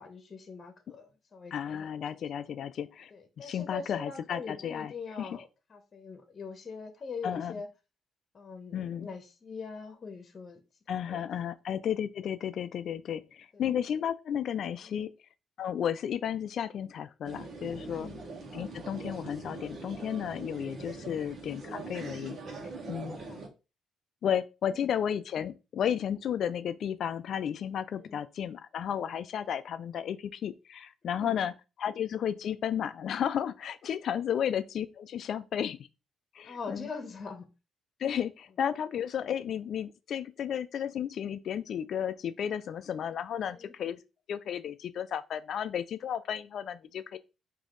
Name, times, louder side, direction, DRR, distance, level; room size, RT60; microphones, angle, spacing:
voice 1, 0.0-2.2 3.1-7.7 8.3-10.6 11.0-11.3 13.5-13.6 14.8-15.0 17.8-18.2 20.9-21.2 23.1-23.4 24.7-24.9 27.9-28.2 31.0-31.5 34.3-34.5 36.4-37.5 43.4-43.7, left 5 dB, 40° left, 1.0 m, -43 dB
voice 2, 1.5-3.1 3.4-4.9 5.2-5.4 7.2-7.6 8.7-9.1 10.9-15.1 15.6-18.1 18.5-22.4 22.9-23.2 24.2-31.5 31.8-35.9 36.3-36.9 38.0-44.0 44.3-47.2, left 9 dB, 65° left, 0.4 m, -33 dB
sound 1, 17.2-23.5, right 3 dB, 55° right, 1.3 m, -42 dB
5.0 x 2.8 x 3.8 m
cardioid pair, 90°, 0 cm